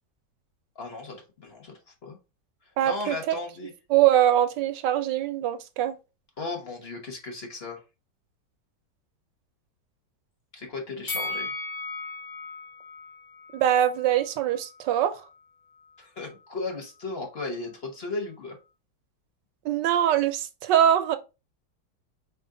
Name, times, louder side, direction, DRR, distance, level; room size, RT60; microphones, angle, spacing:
voice 1, 0.8-1.7 2.0-2.2 2.8-3.7 6.4-7.8 10.5-11.5 16.0-18.6, left 3 dB, 40° left, 1.3 m, -35 dB
voice 2, 2.8-3.3 3.9-6.0 13.5-15.1 19.6-21.2, right 11 dB, 85° right, 1.3 m, -23 dB
Bell, 11.1-14.3 14.6-14.7, left 3 dB, 60° left, 0.4 m, -36 dB
4.3 x 3.3 x 3.7 m
omnidirectional pair, 1.9 m